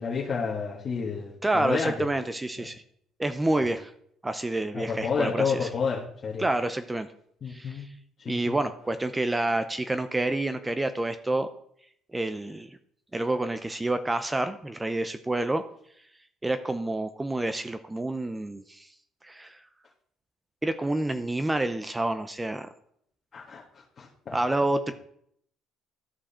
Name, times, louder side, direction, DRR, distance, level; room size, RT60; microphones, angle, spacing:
voice 1, 0.0-2.1 2.6-2.7 3.6-3.7 4.7-6.5 7.4-7.8 8.2-8.6 23.3-24.4, left 5 dB, 40° left, -5 dB, 1.8 m, -30 dB
voice 2, 1.4-2.8 3.2-3.9 4.2-5.7 6.4-7.1 7.5-7.9 8.3-11.5 12.1-12.8 13.1-15.6 16.4-18.9 19.2-19.6 20.6-22.7 24.3-24.9, right 2 dB, 15° right, 10 dB, 0.6 m, -28 dB
13.0 x 4.9 x 4.3 m, 0.68 s
cardioid pair, 100°, 0 cm